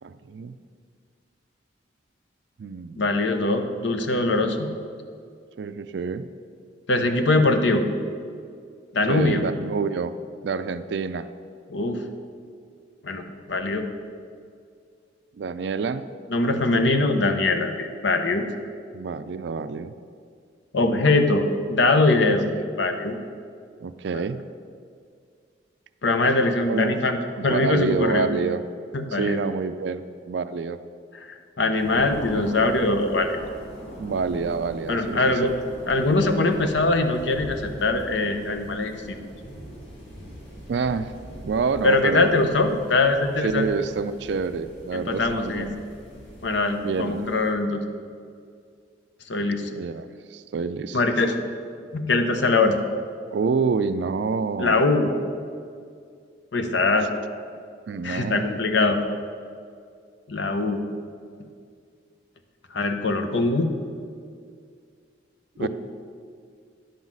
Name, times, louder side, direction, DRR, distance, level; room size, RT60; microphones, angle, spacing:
voice 1, 0.0-0.6 2.6-3.1 5.6-6.3 9.1-10.1 10.4-11.3 15.4-16.1 18.9-19.9 22.3-22.5 23.8-24.4 26.7-27.0 27.4-28.6 29.1-30.8 32.4-32.5 34.0-35.6 40.7-41.1 41.4-42.4 43.4-45.8 46.8-47.2 49.8-51.0 53.3-54.8 57.9-58.6 65.6-65.7, right 5 dB, 65° right, 12 dB, 0.4 m, -27 dB
voice 2, 3.0-4.7 6.9-7.9 8.9-9.4 11.7-12.0 13.0-13.9 16.3-18.4 20.7-22.5 22.8-23.2 24.1-24.2 26.0-27.2 27.4-28.3 28.9-29.4 31.2-33.4 34.9-35.6 35.9-38.9 41.8-43.7 44.9-45.7 46.4-47.8 49.3-49.7 50.9-51.4 51.9-52.8 54.6-55.1 56.5-57.1 58.0-59.0 60.3-60.8 62.7-63.7 65.6-65.7, left 2 dB, 70° left, 7 dB, 0.7 m, -22 dB
sound 1, 31.7-47.5, equal, 85° left, 2.4 m, -41 dB
10.0 x 4.0 x 7.3 m, 2.2 s
head